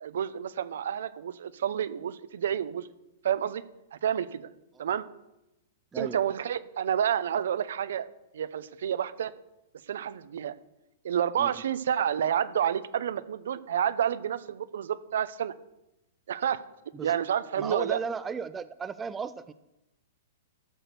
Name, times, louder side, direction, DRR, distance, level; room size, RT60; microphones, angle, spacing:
voice 1, 0.0-2.9 3.2-3.6 3.9-4.5 4.8-5.0 5.9-8.1 8.3-9.3 9.9-10.5 11.0-15.5 16.3-16.6 17.0-18.0, right 9 dB, 75° right, 14 dB, 0.7 m, -29 dB
voice 2, 17.6-19.5, right 5 dB, 15° right, 12 dB, 0.4 m, -35 dB
13.5 x 6.2 x 6.8 m, 0.94 s
hypercardioid pair, 140°, 0 cm